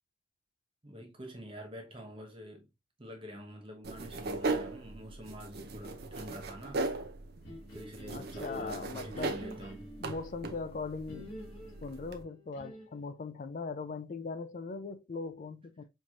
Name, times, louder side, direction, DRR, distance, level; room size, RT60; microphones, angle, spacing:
voice 1, 0.8-2.7 3.0-6.9 7.7-10.0, equal, 25° right, 1.0 m, -47 dB
sound 1, 3.8-12.2, right 3 dB, 50° right, 0.5 m, -39 dB
sound 2, 7.4-10.2 11.1-13.1, equal, 65° left, 1.4 m, -47 dB
voice 2, 8.1-9.4 10.0-11.4 11.8-15.8, left 4 dB, 40° left, 0.3 m, -40 dB
4.4 x 3.0 x 2.4 m
head